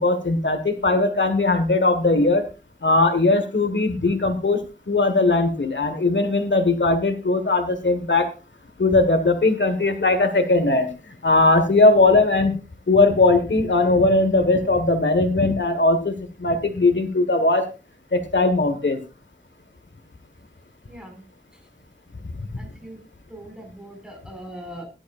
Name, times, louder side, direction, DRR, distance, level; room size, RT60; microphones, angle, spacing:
voice 1, 0.0-2.5 2.8-4.6 4.9-8.3 8.8-10.9 11.2-12.5 12.9-17.7 18.1-19.0, left 2 dB, 85° left, 8 dB, 1.5 m, -19 dB
voice 2, 22.6-23.0 23.3-24.9, right 1 dB, 5° right, 2 dB, 5.6 m, -40 dB
17.0 x 11.5 x 2.5 m, 0.30 s
wide cardioid pair, 50°, 19 cm